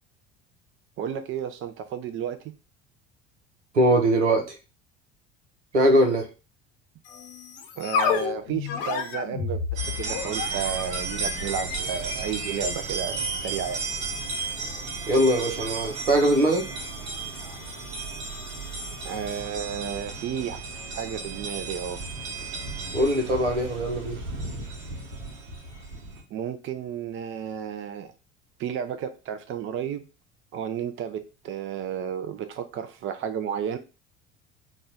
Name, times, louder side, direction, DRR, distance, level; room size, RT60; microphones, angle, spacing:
voice 1, 1.0-2.4 7.8-13.8 19.0-20.6 20.9-22.0 26.3-28.1 28.6-30.0 30.5-33.8, right 8 dB, 35° right, 9 dB, 0.6 m, -32 dB
voice 2, 3.7-4.5 5.7-6.3 15.1-16.7 22.9-24.2, right 1 dB, 85° right, 3 dB, 0.8 m, -21 dB
sound 1, 7.0-19.5, left 6 dB, 55° left, 0.8 m, -34 dB
sound 2, 9.8-26.2, right 4 dB, 65° right, 1.2 m, -34 dB
4.1 x 2.3 x 3.9 m, 0.31 s
figure-of-eight pair, 65°, 34 cm